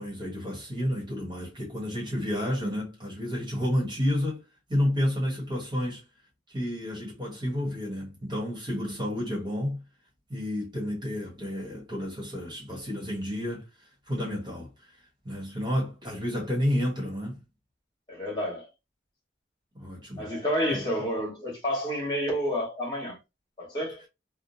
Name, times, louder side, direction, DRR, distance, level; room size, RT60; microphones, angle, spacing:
voice 1, 0.0-4.4 4.7-6.0 6.5-9.8 10.3-13.7 14.1-14.7 15.2-17.4 19.7-20.3 20.7-20.8, equal, 25° right, 1.5 m, -30 dB
voice 2, 18.1-18.7 20.2-23.2 23.6-24.0, equal, 20° left, 1.9 m, -29 dB
3.6 x 2.2 x 2.6 m
head